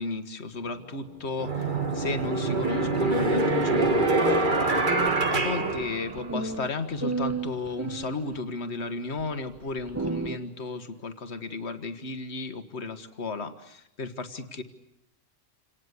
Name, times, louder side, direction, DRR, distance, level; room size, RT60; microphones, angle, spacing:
voice 1, 0.0-14.6, left 3 dB, 60° left, 9 dB, 1.8 m, -34 dB
sound 1, 0.6-0.8 1.4-6.6, right 2 dB, 40° right, 1.9 m, -25 dB
sound 2, 2.5-8.4 9.2-9.3 9.7-10.4, right 3 dB, 15° right, 0.9 m, -34 dB
27.5 x 19.0 x 9.7 m, 0.80 s
omnidirectional pair, 1.2 m